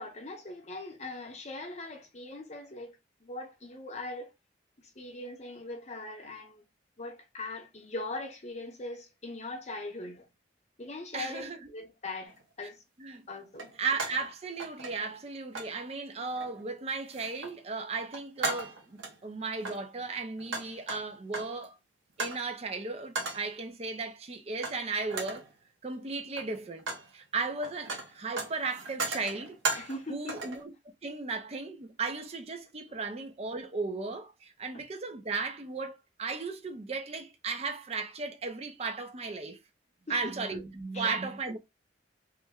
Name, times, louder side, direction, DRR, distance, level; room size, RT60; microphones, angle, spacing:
voice 1, 0.0-4.3 4.8-6.6 7.0-10.3 10.8-12.8 13.3-13.7 29.7-30.3 40.1-40.3 40.9-41.1, left 2 dB, 35° left, 0.7 m, -41 dB
voice 2, 11.1-11.7 12.6-12.7 13.0-13.2 13.8-21.8 22.2-25.5 25.8-26.8 27.1-29.6 30.1-30.7 31.0-39.6 40.1-41.6, right 4 dB, 30° right, 0.4 m, -35 dB
sound 1, 12.3-12.4 13.5-14.3 14.6-15.2 15.5-15.8 16.4-16.7 17.1-17.6 17.9-19.2 19.6-21.6 22.2-22.5 23.1-23.5 24.6-24.8 25.1-25.5 26.2-27.1 27.4-30.0 30.3-30.6, right 3 dB, 85° right, 0.9 m, -36 dB
3.1 x 2.1 x 3.4 m
head